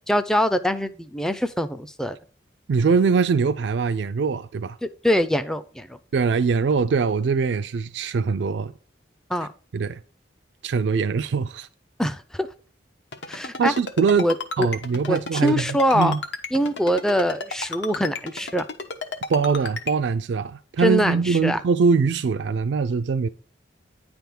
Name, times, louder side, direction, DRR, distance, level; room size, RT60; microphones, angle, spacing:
voice 1, 0.1-2.2 4.8-6.0 9.3-9.5 12.0-12.5 13.3-13.7 14.2-14.7 15.1-16.1 16.5-18.7 20.8-21.6, equal, 5° left, 0.3 m, -23 dB
voice 2, 2.7-4.8 6.1-8.7 9.7-10.0 10.6-11.7 13.6-14.3 14.6-16.2 19.3-23.3, right 5 dB, 75° right, 0.4 m, -22 dB
Ringtone, 13.1-19.9, left 3 dB, 80° left, 1.0 m, -32 dB
9.8 x 3.5 x 5.9 m
head